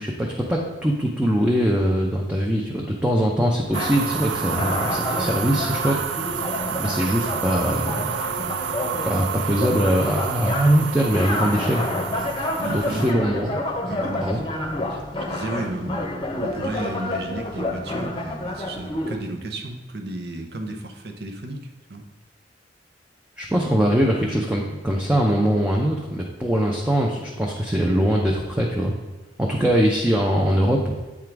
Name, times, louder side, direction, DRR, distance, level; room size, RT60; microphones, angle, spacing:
voice 1, 0.0-6.0 6.7-8.2 9.0-11.8 12.7-13.6 14.2-14.4 23.4-28.9 29.4-30.9, equal, 5° right, -2 dB, 0.6 m, -22 dB
sound 1, 3.6-19.2, left 1 dB, 25° left, 0.8 m, -29 dB
sound 2, 3.7-13.1, right 7 dB, 80° right, 0.4 m, -30 dB
voice 2, 12.4-13.0 13.9-14.4 14.9-15.0 15.3-16.0 16.3-22.0, right 2 dB, 60° right, 4 dB, 0.8 m, -33 dB
8.5 x 3.7 x 4.6 m, 1.2 s
head